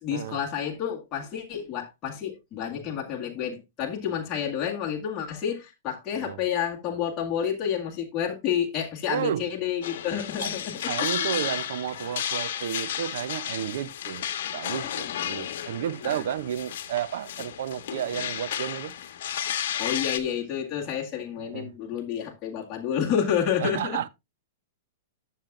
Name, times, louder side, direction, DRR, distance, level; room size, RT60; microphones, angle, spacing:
voice 1, 0.0-11.1 15.0-15.1 16.0-16.2 19.8-24.0, left 8 dB, 25° left, 1.9 m, -29 dB
voice 2, 9.1-9.5 10.4-10.5 10.9-14.2 14.5-18.9 21.4-21.7 23.6-24.1, right 10 dB, 65° right, 0.6 m, -32 dB
sound 1, 9.8-20.2, left 10 dB, 65° left, 1.1 m, -33 dB
11.0 x 7.2 x 2.5 m
hypercardioid pair, 150°, 0 cm